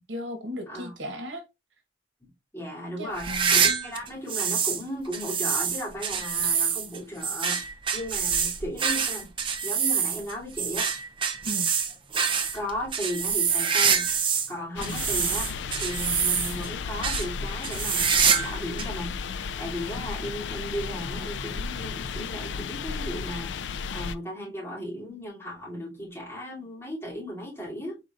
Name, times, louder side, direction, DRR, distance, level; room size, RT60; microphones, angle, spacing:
voice 1, 0.1-1.4 3.0-3.6 11.4-11.7 14.8-15.0, equal, 90° right, 1.1 m, -36 dB
voice 2, 2.2-7.6 7.9-9.3 9.6-10.9 12.5-14.0 14.5-28.0, equal, 15° left, 2.9 m, -36 dB
sound 1, 3.1-4.8 5.1-14.5 14.8-16.7 17.0-17.3 17.6-18.5 18.8-18.9 19.7-19.8 21.0-21.1, right 6 dB, 30° right, 0.6 m, -26 dB
sound 2, 14.8-24.2, left 5 dB, 80° left, 0.4 m, -34 dB
4.9 x 3.9 x 2.5 m
head